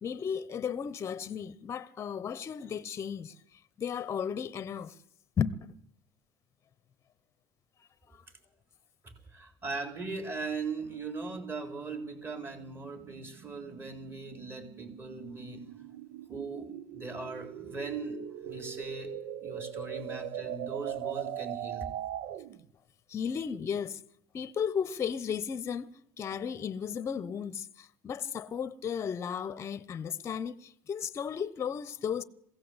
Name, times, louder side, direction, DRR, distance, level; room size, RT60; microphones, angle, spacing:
voice 1, 0.0-3.3 3.8-5.0 5.4-5.8 23.1-24.0 24.3-25.9 26.2-32.2, left 7 dB, 30° left, 0.9 m, -34 dB
voice 2, 9.0-15.8 16.3-19.1 19.4-21.9, right 4 dB, 25° right, 3.9 m, -39 dB
sound 1, 11.3-22.7, right 10 dB, 70° right, 1.0 m, -41 dB
22.5 x 16.5 x 8.0 m
cardioid pair, 145°, 9 cm